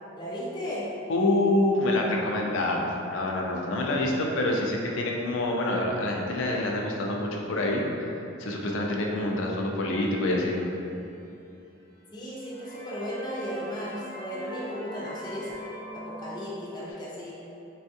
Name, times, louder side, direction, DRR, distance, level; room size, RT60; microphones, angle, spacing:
voice 1, 0.2-0.9 12.1-15.5 15.9-17.4, equal, 20° left, -6 dB, 0.5 m, -35 dB
voice 2, 1.1-10.6, left 1 dB, 75° left, 0 dB, 0.4 m, -27 dB
sound 1, 9.7-11.4 11.9-12.0 12.4-16.9, equal, 55° right, 0.8 m, -42 dB
3.4 x 2.3 x 2.7 m, 2.8 s
head